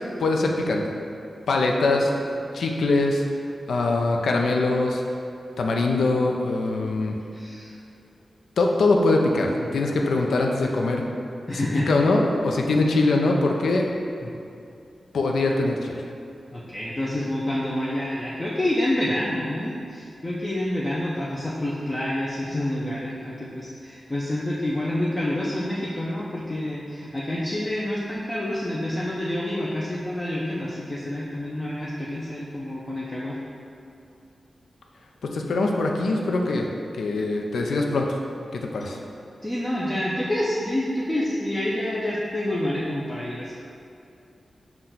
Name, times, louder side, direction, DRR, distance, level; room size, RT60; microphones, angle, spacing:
voice 1, 0.2-0.8 1.5-2.1 2.5-3.2 3.7-5.0 5.6-7.2 8.6-11.0 11.5-13.8 15.1-16.0 35.2-36.7 37.0-38.2 38.5-39.0, left 2 dB, 85° left, 1 dB, 0.4 m, -22 dB
voice 2, 7.3-7.8 9.5-9.8 11.5-11.9 14.2-14.3 16.5-33.4 39.4-43.6, left 1 dB, 15° left, -6 dB, 0.4 m, -28 dB
5.8 x 2.1 x 3.8 m, 2.6 s
wide cardioid pair, 160°, 0 cm